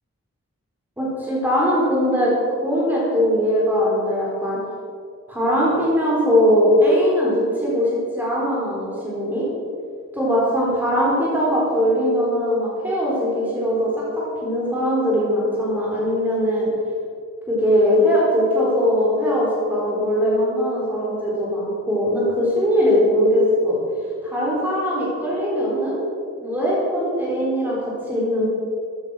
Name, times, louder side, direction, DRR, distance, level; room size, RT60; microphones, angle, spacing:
voice 1, 1.0-2.3 2.6-4.6 5.3-9.5 10.1-16.7 17.5-23.8 24.2-26.0 26.4-28.5, equal, 10° right, -6 dB, 3.9 m, -20 dB
14.5 x 9.6 x 6.4 m, 2.3 s
head